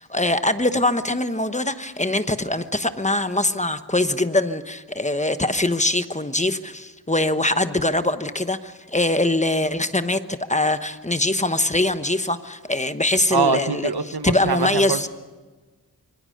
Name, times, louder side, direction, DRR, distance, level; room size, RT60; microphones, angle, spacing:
voice 1, 0.0-10.2 10.5-15.1, left 2 dB, 20° left, 10 dB, 1.1 m, -23 dB
voice 2, 13.3-14.6 14.9-15.1, right 4 dB, 85° right, 10 dB, 1.4 m, -23 dB
26.0 x 24.0 x 6.6 m, 1.3 s
wide cardioid pair, 75°, 37 cm